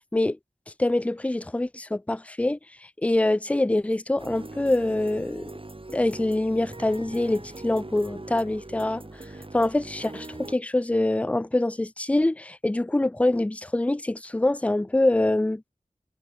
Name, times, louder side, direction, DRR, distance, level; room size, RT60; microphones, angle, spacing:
voice 1, 0.8-2.6 3.0-5.5 5.9-9.0 9.5-15.6, left 2 dB, 10° left, 0.3 m, -25 dB
sound 1, 4.2-10.5, right 2 dB, 40° right, 3.3 m, -41 dB
wide cardioid pair, 50°, 14 cm